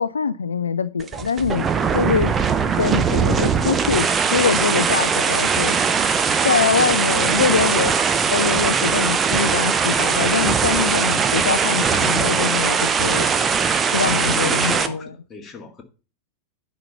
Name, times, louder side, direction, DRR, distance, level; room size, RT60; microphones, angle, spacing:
voice 1, 0.0-1.7 1.9-2.4 2.8-5.8 6.4-8.0 8.3-13.3 13.8-15.0, left 6 dB, 75° left, 0.3 m, -23 dB
sound 1, 1.0-14.9, right 6 dB, 20° right, 0.8 m, -20 dB
voice 2, 14.0-15.8, left 4 dB, 20° left, 1.8 m, -33 dB
10.5 x 4.2 x 6.6 m
figure-of-eight pair, 90°, 0 cm